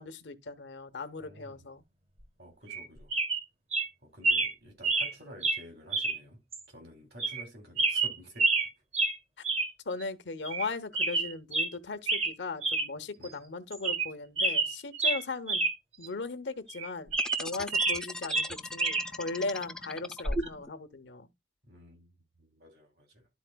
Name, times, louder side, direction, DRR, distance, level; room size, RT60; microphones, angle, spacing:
voice 1, 0.0-1.8 9.9-15.6 16.0-17.1 17.4-21.3, left 3 dB, 90° left, 0.9 m, -38 dB
voice 2, 1.2-1.6 2.4-3.1 4.0-6.4 6.7-8.5 13.2-13.5 21.6-23.3, equal, 70° right, 2.9 m, -51 dB
sound 1, 2.7-2.8 3.1-3.4 3.7-3.9 4.2-4.5 4.8-5.1 5.4-5.6 5.9-6.2 6.5-6.6 7.2-7.5 7.8-8.7 8.9-9.2 9.4-9.7 10.0-10.1 10.4-10.7 10.9-11.7 12.1-12.3 12.6-12.9 13.2-13.3 13.7-14.1 14.4-15.7 16.0-16.1 16.7-18.0 18.3-19.1 20.3-20.5, right 3 dB, 35° right, 1.1 m, -28 dB
sound 2, 17.1-20.7, left 2 dB, 5° left, 0.3 m, -41 dB
12.5 x 4.3 x 2.2 m
head